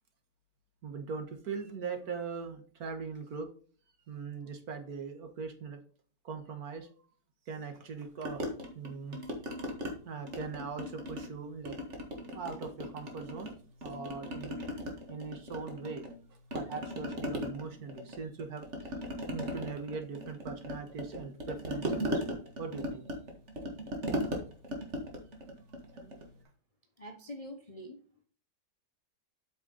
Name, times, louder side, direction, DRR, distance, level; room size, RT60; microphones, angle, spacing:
voice 1, 0.8-3.5 4.1-5.8 6.2-7.1 7.5-8.4 8.7-9.2 10.0-11.8 12.3-13.6 13.8-14.7 15.1-16.1 16.5-18.9 19.3-23.0 25.9-26.2, right 5 dB, 60° right, 7 dB, 1.7 m, -41 dB
sound 1, 8.3-9.9 10.3-11.3 11.7-13.5 13.8-16.2 16.5-26.3, equal, 40° right, 2.0 m, -38 dB
voice 2, 27.0-28.0, equal, 30° left, 4 dB, 0.7 m, -45 dB
8.2 x 5.7 x 3.8 m, 0.42 s
omnidirectional pair, 1.9 m